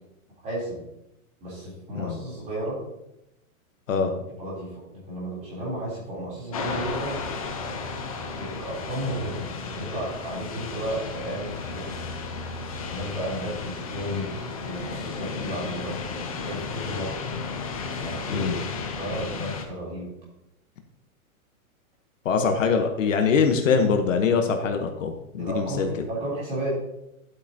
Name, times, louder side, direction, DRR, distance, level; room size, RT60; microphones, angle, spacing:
voice 1, 0.4-0.8 1.4-2.8 3.9-4.1 4.4-7.2 8.4-12.0 12.8-14.3 14.6-17.1 18.0-18.5 18.9-20.1 25.4-26.7, right 1 dB, 15° right, -6 dB, 3.5 m, -33 dB
sound 1, 6.5-19.6, left 4 dB, 25° left, 0.6 m, -33 dB
voice 2, 22.2-25.9, left 5 dB, 60° left, 5 dB, 1.2 m, -23 dB
12.0 x 8.2 x 2.8 m, 0.87 s
hypercardioid pair, 180°, 43 cm